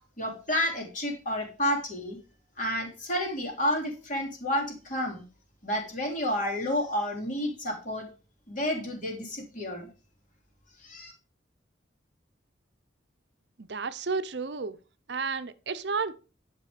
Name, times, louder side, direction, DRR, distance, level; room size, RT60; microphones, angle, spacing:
voice 1, 0.2-2.2 2.6-5.2 5.6-8.1 8.5-9.9 10.8-11.1, left 1 dB, 40° left, 3.1 m, -30 dB
voice 2, 13.6-14.8 15.1-16.1, right 4 dB, 60° right, 0.7 m, -32 dB
10.5 x 6.1 x 4.9 m
head